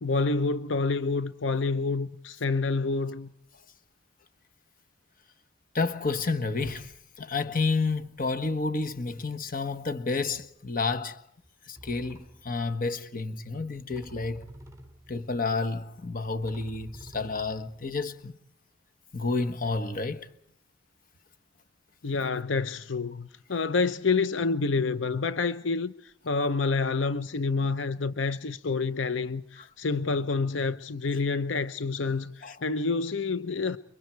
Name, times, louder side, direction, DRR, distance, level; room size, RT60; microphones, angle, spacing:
voice 1, 0.0-3.3 22.0-25.9 26.2-33.8, left 4 dB, 85° left, 0.8 m, -28 dB
voice 2, 5.7-11.2 11.7-14.4 15.1-18.3 19.1-20.3 32.4-32.6, left 3 dB, 50° left, 1.5 m, -30 dB
sound 1, 10.3-10.7 11.4-11.5 11.8-12.6 13.9-15.4 16.0-16.1 16.4-18.3, equal, 15° right, 3.9 m, -49 dB
29.0 x 24.0 x 4.6 m
head